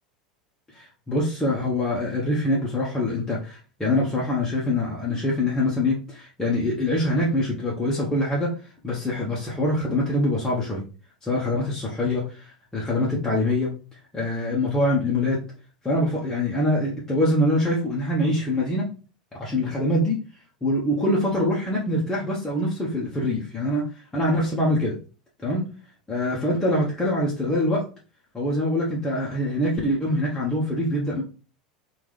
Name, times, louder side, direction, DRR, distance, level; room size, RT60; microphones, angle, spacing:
voice 1, 0.7-8.6 8.8-10.8 11.2-13.7 14.1-15.4 15.8-18.9 19.4-20.2 20.6-24.9 25.4-25.7 26.1-27.8 28.3-31.2, left 1 dB, 10° left, -6 dB, 1.1 m, -24 dB
3.3 x 2.7 x 3.3 m, 0.35 s
figure-of-eight pair, 80°, 4 cm